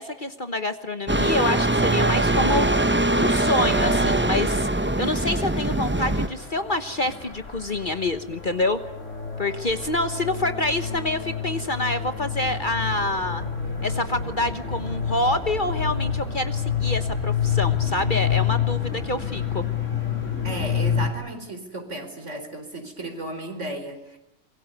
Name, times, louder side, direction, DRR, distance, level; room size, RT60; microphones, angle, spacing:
voice 1, 0.0-2.9 3.2-8.8 9.4-13.5 13.8-19.6, left 2 dB, 35° left, 9 dB, 1.3 m, -27 dB
sound 1, 1.1-6.3, right 2 dB, 10° right, 1.0 m, -22 dB
sound 2, 5.7-21.1, left 7 dB, 60° left, 4.6 m, -28 dB
voice 2, 20.4-24.2, right 1 dB, 55° right, 7 dB, 4.6 m, -34 dB
25.5 x 23.0 x 9.6 m, 0.85 s
omnidirectional pair, 1.5 m